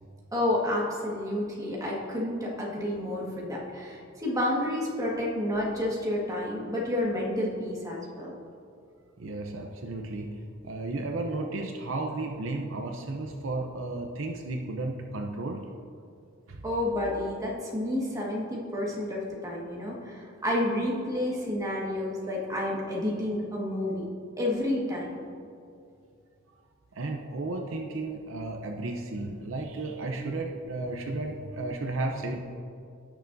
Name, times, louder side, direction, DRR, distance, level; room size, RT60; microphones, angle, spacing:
voice 1, 0.3-8.4 16.6-24.0 24.4-25.2, left 1 dB, 15° right, -4 dB, 1.7 m, -30 dB
voice 2, 9.2-10.3 10.6-15.7 16.5-16.6 26.9-32.4, right 2 dB, 70° right, 3 dB, 0.7 m, -33 dB
16.0 x 6.7 x 2.7 m, 2.4 s
head